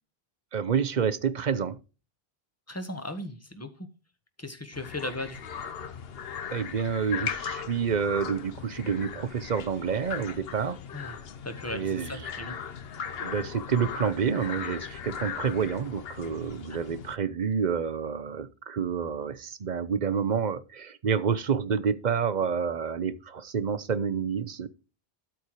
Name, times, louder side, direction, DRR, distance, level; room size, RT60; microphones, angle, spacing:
voice 1, 0.5-1.8 6.5-10.8 11.7-12.2 13.2-24.7, right 6 dB, 50° right, 0.8 m, -28 dB
voice 2, 2.7-3.9 4.4-5.4 10.9-11.2 11.4-12.6, left 1 dB, 15° left, 1.3 m, -37 dB
sound 1, 4.7-17.2, left 7 dB, 75° left, 1.1 m, -38 dB
12.5 x 4.6 x 4.9 m
omnidirectional pair, 1.0 m